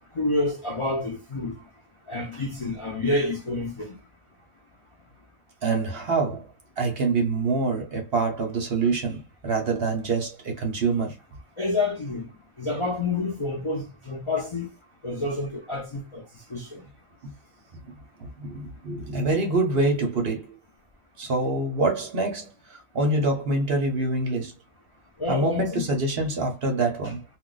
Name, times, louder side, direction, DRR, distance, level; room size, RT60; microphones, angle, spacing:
voice 1, 0.1-1.6 2.1-3.9 11.6-12.3 12.6-14.7 15.0-16.2 16.5-16.8 25.2-25.9, left 2 dB, 55° left, 0.3 m, -28 dB
voice 2, 5.6-6.5 6.8-11.2 18.2-20.6 21.2-24.5 25.3-27.2, right 3 dB, 50° right, 0.8 m, -25 dB
2.4 x 2.3 x 3.8 m
omnidirectional pair, 1.5 m